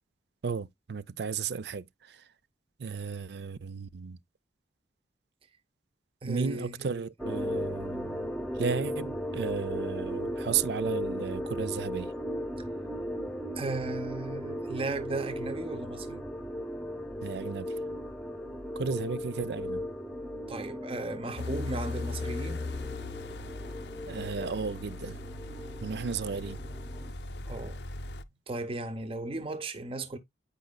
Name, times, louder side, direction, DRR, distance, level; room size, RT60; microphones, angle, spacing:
voice 1, 0.4-2.2 2.8-4.2 6.2-8.2 8.6-12.1 17.2-17.7 18.8-19.8 24.1-25.2 25.8-26.6, right 5 dB, 70° right, 0.4 m, -34 dB
voice 2, 6.2-6.9 12.6-12.7 13.6-16.2 20.5-22.7 27.5-27.8 28.5-30.2, right 2 dB, 30° right, 0.8 m, -36 dB
sound 1, 7.2-27.1, equal, 5° left, 0.8 m, -37 dB
sound 2, 21.4-28.2, left 3 dB, 70° left, 0.6 m, -39 dB
9.0 x 5.1 x 2.2 m
head